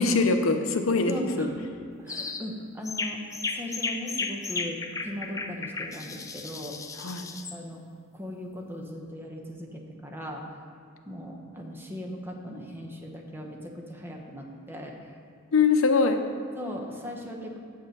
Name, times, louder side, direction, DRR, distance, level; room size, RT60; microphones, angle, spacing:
voice 1, 0.0-1.5 7.0-7.2 15.5-16.2, left 4 dB, 70° left, 6 dB, 0.7 m, -23 dB
voice 2, 0.9-1.6 2.0-3.2 3.5-6.8 7.5-7.8 8.1-10.4 11.1-15.1 16.5-17.6, equal, 10° right, 1 dB, 0.9 m, -38 dB
sound 1, 2.1-2.4 2.8-7.6, left 4 dB, 15° left, 0.4 m, -34 dB
7.9 x 6.6 x 5.3 m, 2.5 s
head